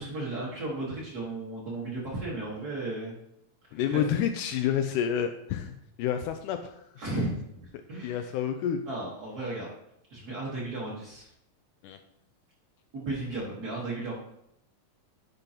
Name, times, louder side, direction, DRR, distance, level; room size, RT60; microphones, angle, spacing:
voice 1, 0.0-3.1 3.7-4.0 7.0-7.3 7.9-8.3 8.9-9.7 10.1-11.3 12.9-14.1, right 2 dB, 85° right, -5 dB, 0.8 m, -34 dB
voice 2, 3.7-5.7 6.0-6.8 8.0-8.8 11.8-12.0, left 9 dB, 90° left, 7 dB, 1.8 m, -28 dB
10.5 x 5.4 x 2.9 m, 0.78 s
omnidirectional pair, 4.1 m